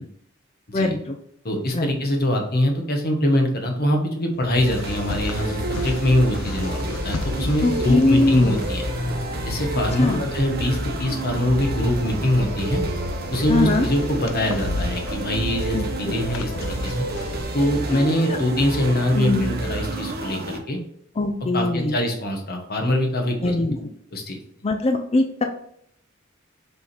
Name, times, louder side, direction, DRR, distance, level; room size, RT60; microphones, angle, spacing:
voice 1, 0.7-1.2 1.7-1.9 7.6-8.6 10.0-10.2 13.5-13.9 15.7-15.8 18.3-18.4 19.1-19.5 21.2-21.9 23.4-23.8 24.6-25.4, left 2 dB, 30° left, 4 dB, 0.5 m, -21 dB
voice 2, 1.4-8.9 9.4-12.8 13.3-17.1 17.5-20.8 21.5-23.5 24.1-24.4, left 1 dB, 50° left, 2 dB, 1.4 m, -23 dB
sound 1, 4.4-17.4, left 3 dB, 85° left, 0.6 m, -33 dB
sound 2, 4.6-20.6, right 2 dB, 50° right, 1.1 m, -30 dB
6.9 x 3.7 x 4.4 m, 0.69 s
head